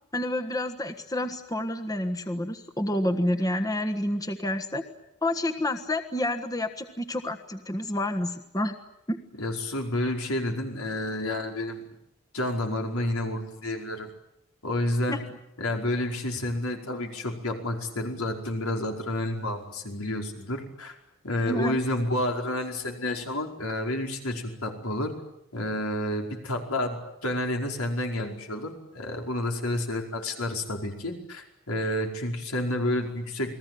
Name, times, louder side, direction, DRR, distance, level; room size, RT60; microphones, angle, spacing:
voice 1, 0.1-4.8 5.2-8.7 9.1-9.2 15.1-15.2 21.4-21.8, left 1 dB, 15° left, 5 dB, 1.4 m, -29 dB
voice 2, 9.4-11.8 12.3-14.1 14.6-15.2 15.6-21.0 21.2-25.1 25.5-33.6, left 1 dB, 85° left, 2 dB, 5.1 m, -30 dB
29.5 x 21.0 x 9.3 m, 0.86 s
head